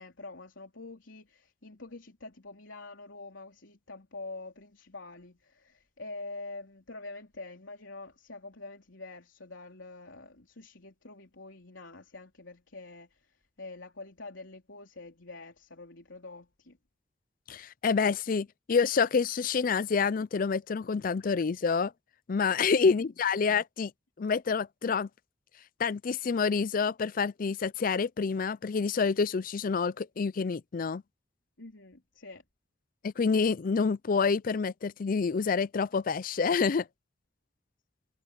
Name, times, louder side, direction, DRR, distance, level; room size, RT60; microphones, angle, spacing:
voice 1, 0.0-16.8 22.6-23.2 31.6-32.4, left 3 dB, 90° left, 3.6 m, -46 dB
voice 2, 17.5-21.9 22.3-23.9 24.2-25.1 25.8-31.0 33.0-36.9, left 5 dB, 45° left, 0.4 m, -28 dB
head